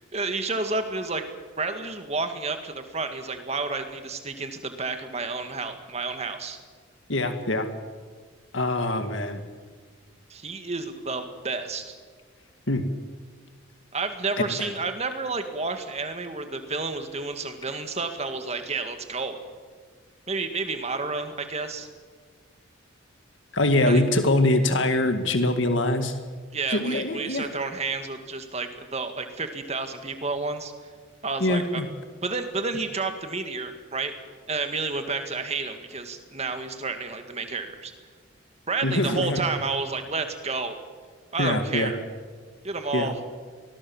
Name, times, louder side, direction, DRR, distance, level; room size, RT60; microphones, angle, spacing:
voice 1, 0.1-1.2 1.6-6.6 10.3-12.0 13.9-19.4 20.3-21.9 23.9-24.0 26.5-30.7 31.2-31.8 32.2-34.1 34.5-37.9 38.7-40.8 41.3-42.0 42.6-43.2, right 3 dB, 30° right, 7 dB, 2.1 m, -30 dB
voice 2, 7.1-7.7 8.5-9.4 12.7-12.8 23.5-26.1 26.7-27.5 31.4-31.9 38.8-39.4 41.4-41.9 42.9-43.1, left 2 dB, 65° left, 7 dB, 1.9 m, -23 dB
24.0 x 20.0 x 7.3 m, 1.5 s
head